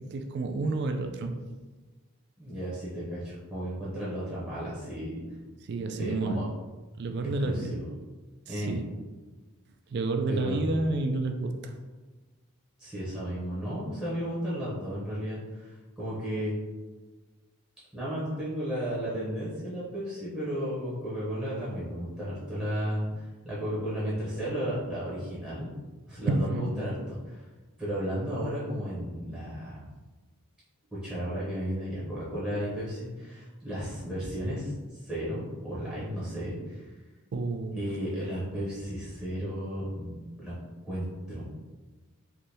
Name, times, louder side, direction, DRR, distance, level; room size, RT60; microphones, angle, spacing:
voice 1, 0.0-1.4 5.6-6.4 7.0-7.7 8.5-8.8 9.9-11.8 26.3-26.7 37.3-37.9, right 2 dB, 50° right, 6 dB, 0.3 m, -30 dB
voice 2, 2.4-5.2 5.9-6.5 7.4-7.8 8.5-8.8 10.3-10.6 12.8-16.5 17.9-25.7 26.1-27.4 27.8-29.8 31.0-36.8 37.7-41.5, equal, ahead, -10 dB, 0.7 m, -34 dB
3.3 x 2.6 x 2.7 m, 1.3 s
head